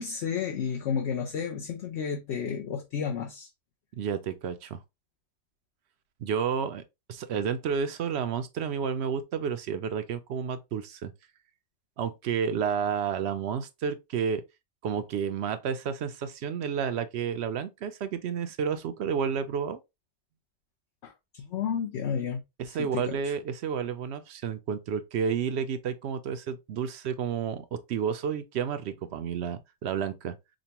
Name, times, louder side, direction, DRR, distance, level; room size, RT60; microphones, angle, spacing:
voice 1, 0.0-3.5 21.0-22.4 22.7-23.3, left 7 dB, 65° left, 0.9 m, -32 dB
voice 2, 4.0-4.8 6.2-6.8 7.1-11.1 12.0-14.4 14.8-19.8 22.6-30.4, right 7 dB, 65° right, 0.8 m, -31 dB
5.1 x 2.2 x 2.8 m
omnidirectional pair, 1.3 m